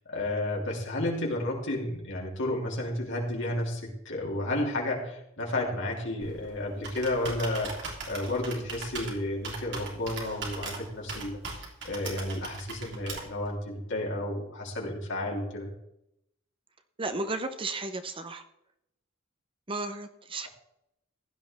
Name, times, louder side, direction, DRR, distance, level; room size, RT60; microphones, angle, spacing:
voice 1, 0.1-15.7, left 1 dB, 65° left, -2 dB, 3.4 m, -32 dB
Computer keyboard, 6.2-13.5, right 3 dB, 60° right, 3.2 m, -40 dB
voice 2, 17.0-18.4 19.7-20.5, right 2 dB, 25° right, 8 dB, 0.8 m, -34 dB
16.0 x 11.0 x 3.5 m, 0.81 s
head